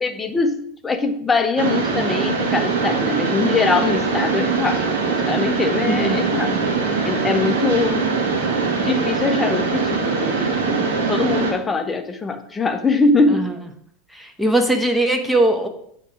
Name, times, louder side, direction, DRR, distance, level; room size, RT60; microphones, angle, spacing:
voice 1, 0.0-6.6 7.0-8.2 8.8-13.5, left 3 dB, 20° left, 8 dB, 0.7 m, -22 dB
Mechanisms, 1.6-11.5, right 4 dB, 70° right, 1.3 m, -22 dB
voice 2, 5.8-6.8 13.3-13.5 14.1-15.7, right 1 dB, 5° right, 5 dB, 0.9 m, -21 dB
8.0 x 3.1 x 4.8 m, 0.69 s
hypercardioid pair, 90°, 0 cm